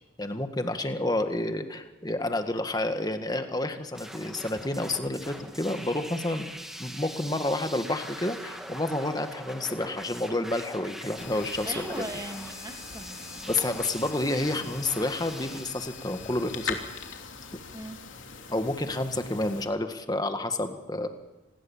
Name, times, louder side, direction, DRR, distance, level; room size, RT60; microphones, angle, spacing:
voice 1, 0.2-6.5 6.8-12.0 13.5-16.8 18.5-21.1, left 2 dB, 20° left, 7 dB, 1.7 m, -29 dB
sound 1, 3.9-15.7, equal, ahead, 2.0 m, -42 dB
sound 2, 11.2-19.6, left 6 dB, 75° left, 3.1 m, -41 dB
voice 2, 11.6-13.5 17.7-18.0, right 1 dB, 20° right, 4 dB, 2.7 m, -39 dB
27.0 x 20.0 x 7.3 m, 1.1 s
head